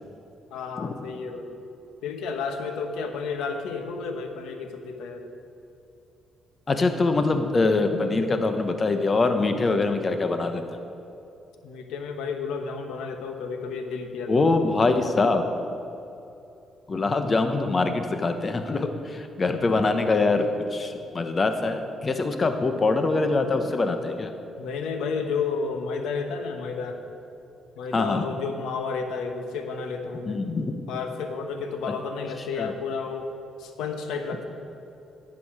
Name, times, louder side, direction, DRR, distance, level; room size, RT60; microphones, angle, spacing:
voice 1, 0.5-1.5 2.0-5.3 11.6-14.4 23.4-23.8 24.6-27.0 27.8-30.4 30.9-33.3 33.6-34.5, left 5 dB, 85° left, 5 dB, 1.1 m, -31 dB
voice 2, 6.7-10.6 14.3-15.5 16.9-24.3 27.9-28.2 30.3-30.7 32.6-32.7, left 3 dB, 35° left, 7 dB, 1.0 m, -24 dB
12.0 x 8.5 x 4.9 m, 2.8 s
cardioid pair, 90°, 0 cm